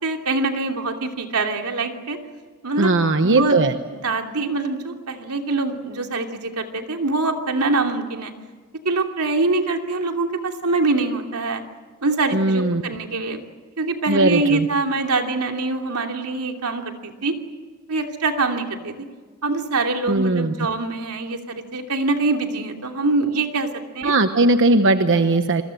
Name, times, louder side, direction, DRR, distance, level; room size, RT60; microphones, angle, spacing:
voice 1, 0.0-2.2 2.6-2.9 3.2-3.6 3.9-8.3 8.8-11.6 12.0-13.4 13.8-17.3 17.9-19.1 19.4-23.7 23.9-24.1, right 3 dB, 90° right, 3 dB, 2.9 m, -24 dB
voice 2, 2.8-3.7 12.3-12.8 14.1-14.7 20.1-20.5 24.0-25.6, right 2 dB, 60° right, 8 dB, 1.1 m, -18 dB
28.5 x 22.0 x 7.8 m, 1.4 s
head